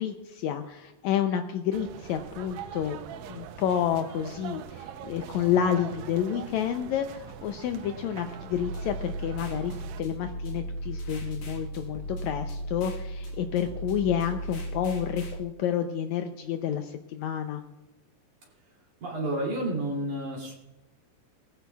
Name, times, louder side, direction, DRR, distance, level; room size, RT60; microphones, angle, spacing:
voice 1, 0.0-3.0 3.3-17.6, left 9 dB, 85° left, 6 dB, 1.6 m, -29 dB
sound 1, 1.7-10.0, right 9 dB, 85° right, 1.6 m, -43 dB
sound 2, 5.3-14.2, right 1 dB, 25° right, 2.9 m, -52 dB
sound 3, 8.5-15.4, right 1 dB, 55° left, 2.2 m, -36 dB
voice 2, 19.0-20.5, right 1 dB, 60° right, -2 dB, 4.0 m, -30 dB
20.0 x 15.0 x 2.3 m, 0.99 s
omnidirectional pair, 4.0 m